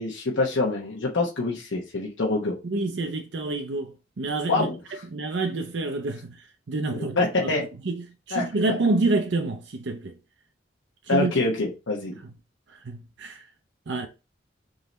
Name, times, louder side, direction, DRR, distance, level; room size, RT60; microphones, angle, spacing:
voice 1, 0.0-2.5 4.5-4.8 6.9-7.6 8.3-8.8 11.1-12.1, left 3 dB, 85° left, 1.0 m, -26 dB
voice 2, 2.6-4.7 5.1-7.5 7.8-10.2 11.1-11.3 12.7-13.5 13.9-14.1, right 3 dB, 70° right, 0.6 m, -28 dB
4.0 x 3.8 x 3.1 m
head